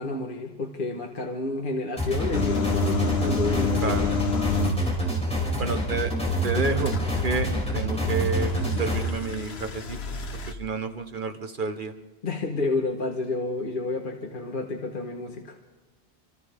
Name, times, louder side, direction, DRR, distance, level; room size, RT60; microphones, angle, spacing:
voice 1, 0.0-4.1 12.2-15.6, left 3 dB, 55° left, 2 dB, 1.5 m, -30 dB
sound 1, 2.0-9.0, right 1 dB, 5° left, 4.5 m, -27 dB
sound 2, 2.3-4.9 6.9-10.5, left 6 dB, 70° left, 1.3 m, -30 dB
voice 2, 3.8-4.2 5.6-6.1 6.4-6.9 7.2-8.5 8.8-10.0 10.5-11.9, right 4 dB, 50° right, 7 dB, 1.3 m, -30 dB
28.5 x 26.5 x 3.6 m, 1.2 s
omnidirectional pair, 1.1 m